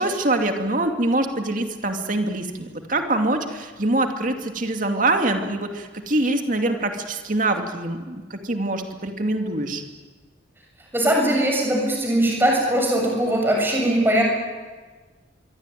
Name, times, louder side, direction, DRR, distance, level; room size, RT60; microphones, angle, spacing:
voice 1, 0.0-9.8, right 2 dB, 45° right, 4 dB, 2.6 m, -24 dB
voice 2, 10.9-14.2, right 1 dB, 10° right, 0 dB, 7.1 m, -20 dB
25.5 x 24.0 x 9.3 m, 1.4 s
head